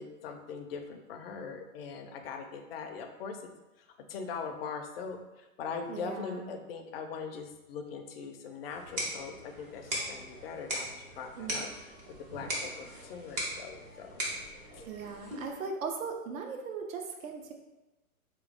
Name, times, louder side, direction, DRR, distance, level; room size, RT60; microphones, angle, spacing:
voice 1, 0.0-3.4 4.1-5.2 5.6-11.7 12.2-14.1 14.7-14.8, left 5 dB, 45° left, 5 dB, 0.5 m, -41 dB
voice 2, 5.9-6.6 11.4-11.7 14.8-17.5, right 5 dB, 65° right, 3 dB, 0.7 m, -39 dB
sound 1, 8.6-15.6, equal, 15° right, 0.3 m, -39 dB
3.3 x 3.1 x 3.4 m, 1.1 s
hypercardioid pair, 120°, 44 cm